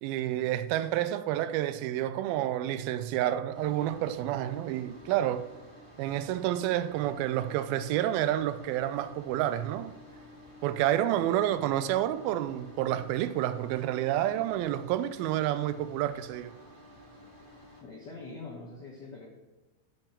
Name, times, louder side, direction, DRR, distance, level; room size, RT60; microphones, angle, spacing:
voice 1, 0.0-5.5 6.0-9.9 10.6-16.5, right 12 dB, 85° right, 2.4 m, -29 dB
sound 1, 3.5-17.8, left 1 dB, 15° right, 2.3 m, -51 dB
voice 2, 17.8-19.3, left 3 dB, 75° left, 0.9 m, -43 dB
7.3 x 6.5 x 7.1 m
omnidirectional pair, 4.3 m